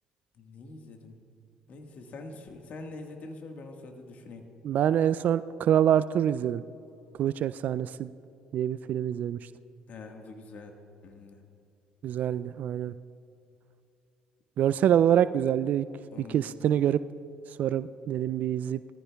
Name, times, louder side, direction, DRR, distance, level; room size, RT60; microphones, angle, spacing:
voice 1, 0.4-1.2 1.7-4.4 9.9-10.7 11.0-11.4 16.1-16.5, left 3 dB, 55° left, 4 dB, 1.6 m, -44 dB
voice 2, 4.6-6.6 7.2-8.1 8.5-9.4 12.0-12.9 14.6-15.8 16.3-17.0 17.6-18.8, right 10 dB, 55° right, 15 dB, 0.3 m, -25 dB
20.5 x 14.0 x 2.3 m, 2.7 s
hypercardioid pair, 55°, 3 cm